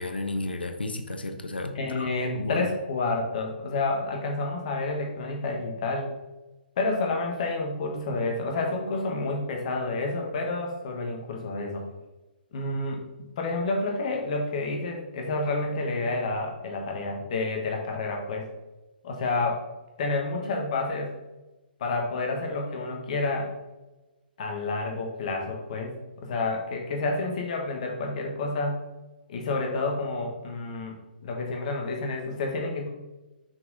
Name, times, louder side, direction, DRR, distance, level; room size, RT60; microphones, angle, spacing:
voice 1, 0.0-2.1 2.3-2.6, left 2 dB, 75° left, 7 dB, 0.8 m, -32 dB
voice 2, 1.7-6.1 6.8-11.8 12.5-13.0 13.4-18.5 19.0-19.6 20.0-21.1 21.8-23.5 24.4-28.8 29.3-31.0 31.2-32.9, left 3 dB, 45° left, 1 dB, 1.4 m, -29 dB
6.0 x 4.7 x 3.8 m, 1.1 s
figure-of-eight pair, 130°, 5 cm